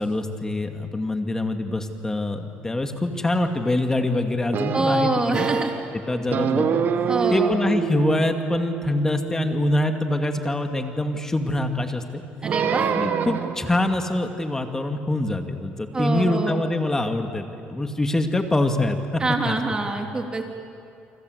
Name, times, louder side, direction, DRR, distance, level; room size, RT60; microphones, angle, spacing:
voice 1, 0.0-5.5 5.9-6.8 7.3-12.2 13.0-19.9, left 2 dB, 15° left, 5 dB, 2.3 m, -25 dB
sound 1, 4.5-5.9 6.3-10.6 12.4-13.7, right 7 dB, 50° right, 1.5 m, -26 dB
voice 2, 4.7-5.7 7.1-7.6 12.4-12.9 15.9-16.6 19.2-20.4, right 2 dB, 20° right, 3 dB, 3.4 m, -25 dB
29.5 x 25.0 x 8.1 m, 2.6 s
cardioid pair, 110°, 4 cm